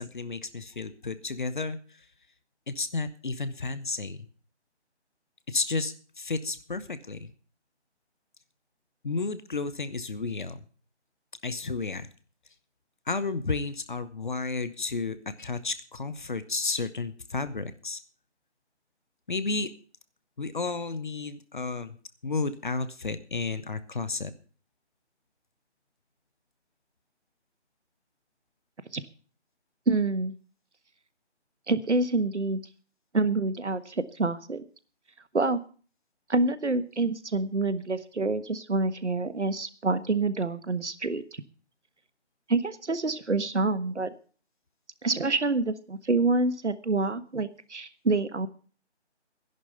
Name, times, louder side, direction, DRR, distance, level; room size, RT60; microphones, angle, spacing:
voice 1, 0.0-1.8 2.7-4.3 5.5-7.3 9.0-10.6 11.4-12.1 13.1-18.0 19.3-19.7 20.4-22.0 22.2-24.3, left 3 dB, 45° left, 13 dB, 1.0 m, -32 dB
voice 2, 29.9-30.3 31.7-32.6 33.1-34.6 35.3-35.6 36.3-41.4 42.5-44.1 45.0-48.5, right 3 dB, 80° right, 13 dB, 1.4 m, -27 dB
13.0 x 11.0 x 5.5 m, 0.40 s
figure-of-eight pair, 160°, 35 cm